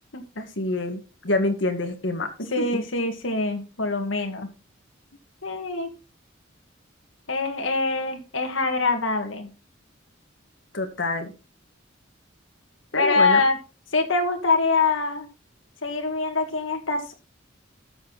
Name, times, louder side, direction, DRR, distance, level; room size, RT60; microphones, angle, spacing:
voice 1, 0.3-2.8 10.7-11.3 12.9-13.4, left 2 dB, 70° left, 5 dB, 1.6 m, -27 dB
voice 2, 2.5-4.5 5.4-5.9 7.3-9.5 13.0-13.6 13.9-15.3 15.8-17.1, left 3 dB, 90° left, 4 dB, 2.0 m, -24 dB
13.0 x 6.9 x 4.0 m, 0.32 s
head